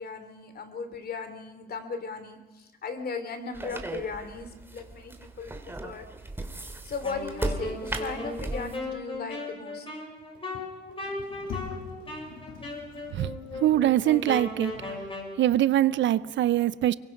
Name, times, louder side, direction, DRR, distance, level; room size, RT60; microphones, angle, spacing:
voice 1, 0.0-5.5 5.8-6.1 6.8-9.9 10.5-10.6 11.2-11.3, left 4 dB, 50° left, 3.0 m, -37 dB
sound 1, 3.5-8.8, right 2 dB, 10° right, 2.4 m, -36 dB
Wind instrument woodwind instrument, 7.0-15.4, left 2 dB, 25° left, 6.0 m, -37 dB
Sliding door, 11.0-15.5, left 5 dB, 90° left, 2.8 m, -45 dB
voice 2, 13.6-14.8 15.4-16.9, right 13 dB, 70° right, 0.6 m, -23 dB
24.0 x 22.0 x 5.3 m
cardioid pair, 90°, 20 cm